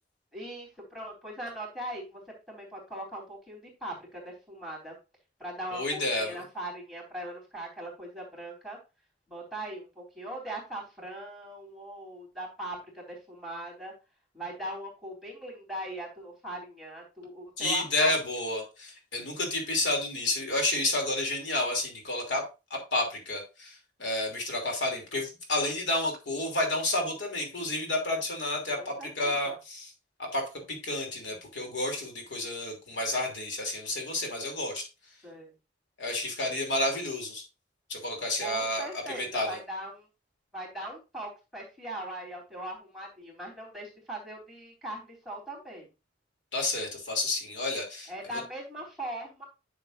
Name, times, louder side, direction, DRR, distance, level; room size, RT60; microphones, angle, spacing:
voice 1, 0.3-2.2 2.5-5.0 5.4-8.8 9.3-13.9 14.3-18.1 28.8-29.5 35.2-35.5 38.4-40.1 40.5-45.9 48.1-49.4, right 1 dB, ahead, -3 dB, 3.5 m, -40 dB
voice 2, 5.7-6.4 17.6-29.9 30.2-34.9 36.0-37.4 37.9-39.6 46.5-48.4, left 2 dB, 80° left, 1 dB, 2.9 m, -30 dB
10.5 x 6.7 x 2.6 m, 0.28 s
head